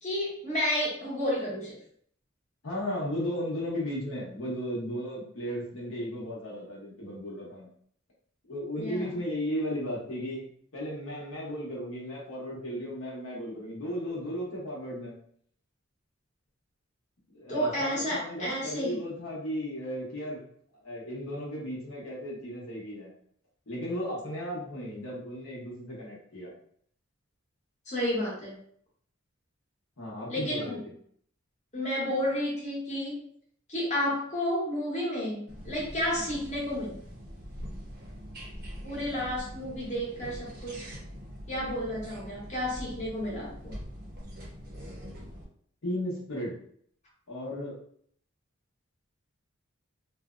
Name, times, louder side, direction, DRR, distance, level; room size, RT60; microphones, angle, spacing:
voice 1, 0.0-1.8 8.8-9.0 17.5-19.0 27.9-28.6 30.3-30.8 31.7-33.2 33.7-37.0 38.8-40.8 41.5-43.7, left 1 dB, 35° left, -5 dB, 1.0 m, -31 dB
voice 2, 2.6-7.7 8.5-10.4 10.7-15.2 17.3-20.4 20.8-23.1 23.7-26.5 30.0-30.8 36.1-36.3 45.8-46.6 47.3-47.8, equal, 70° left, -5 dB, 0.9 m, -35 dB
sound 1, 35.5-45.4, equal, 50° right, 0.7 m, -43 dB
2.6 x 2.1 x 2.4 m, 0.62 s
head